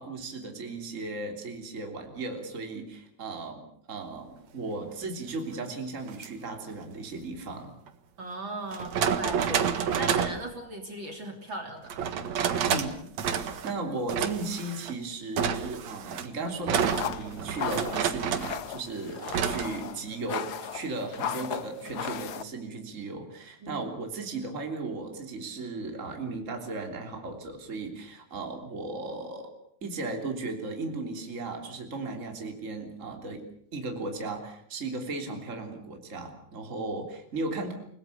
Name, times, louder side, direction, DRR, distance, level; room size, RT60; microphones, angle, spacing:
voice 1, 0.0-7.7 12.7-13.0 13.3-29.5 29.8-33.4 33.7-37.7, right 3 dB, 25° right, 3 dB, 3.5 m, -36 dB
sound 1, 6.1-6.3 7.9-8.0 8.7-10.4 11.9-12.9 13.2-13.7 14.1-14.9 15.4-18.6 19.3-19.7, right 7 dB, 70° right, 2.9 m, -29 dB
voice 2, 8.2-12.1 13.4-13.6 23.6-23.8, right 2 dB, 40° right, 4 dB, 3.7 m, -38 dB
sound 2, 16.8-22.4, left 8 dB, 70° left, 0.9 m, -36 dB
29.5 x 19.5 x 6.8 m, 0.70 s
omnidirectional pair, 3.3 m